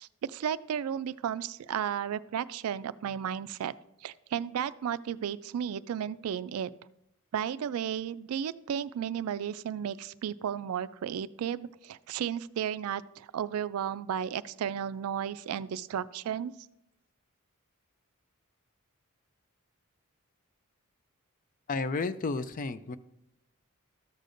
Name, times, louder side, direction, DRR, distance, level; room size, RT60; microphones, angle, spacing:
voice 1, 0.0-3.7 4.0-6.7 7.3-16.5, right 8 dB, 70° right, 16 dB, 0.3 m, -34 dB
voice 2, 21.7-23.0, left 3 dB, 35° left, 12 dB, 0.4 m, -32 dB
13.5 x 6.6 x 2.5 m, 0.80 s
head